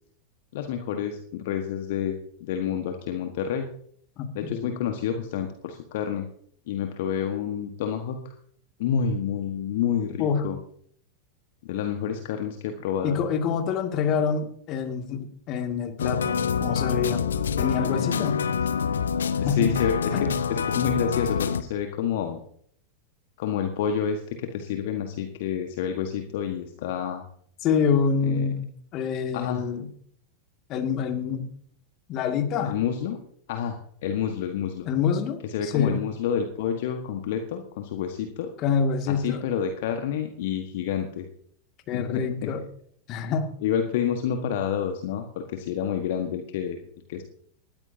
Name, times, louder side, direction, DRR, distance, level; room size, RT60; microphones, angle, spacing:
voice 1, 0.5-3.7 4.3-6.3 6.7-8.3 8.8-10.6 11.6-13.2 19.4-22.4 23.4-27.2 28.2-28.5 29.3-29.7 32.6-33.2 33.5-34.9 35.5-38.5 39.1-41.3 41.9-42.5 43.6-46.8 47.1-47.2, left 8 dB, 55° left, 5 dB, 1.4 m, -29 dB
voice 2, 4.2-4.7 10.2-10.4 13.0-17.2 17.6-18.4 19.4-19.7 20.1-20.2 27.6-28.6 28.9-29.9 30.7-31.5 32.1-32.8 34.9-36.0 38.6-39.4 41.9-42.6 43.1-43.5, left 6 dB, 35° left, 5 dB, 2.2 m, -26 dB
sound 1, 16.0-21.6, left 6 dB, 70° left, 0.8 m, -26 dB
19.5 x 14.0 x 2.8 m, 0.63 s
figure-of-eight pair, 90°, 0 cm